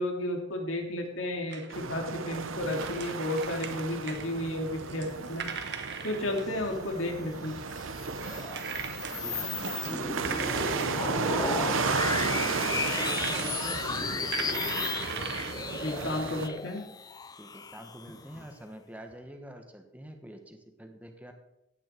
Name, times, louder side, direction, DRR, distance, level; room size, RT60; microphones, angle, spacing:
voice 1, 0.0-5.4 6.0-7.6 15.8-16.8, left 1 dB, 85° left, 2 dB, 2.9 m, -32 dB
sound 1, 1.5-2.0 2.7-4.3 4.7-7.3 8.2-9.2 9.5-11.8 12.5-13.6 13.9-16.8, right 6 dB, 55° right, 1.3 m, -40 dB
sound 2, 1.7-16.5, right 4 dB, 85° right, 0.9 m, -34 dB
sound 3, 7.5-18.4, left 5 dB, 20° left, 0.4 m, -35 dB
voice 2, 9.1-11.9 12.4-14.6 17.4-21.3, equal, 5° right, 4 dB, 1.3 m, -46 dB
16.5 x 9.2 x 4.6 m, 0.86 s
head